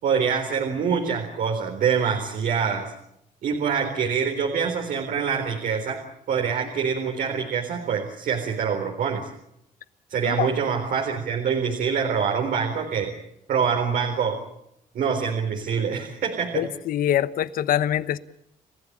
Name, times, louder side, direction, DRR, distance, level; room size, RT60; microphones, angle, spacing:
voice 1, 0.0-2.9 3.4-6.0 6.3-9.3 10.1-13.1 13.5-14.4 14.9-16.6, right 6 dB, 70° right, 4.1 m, -25 dB
voice 2, 16.5-18.2, left 11 dB, 75° left, 1.1 m, -24 dB
30.0 x 15.5 x 8.8 m
cardioid pair, 115°, 15 cm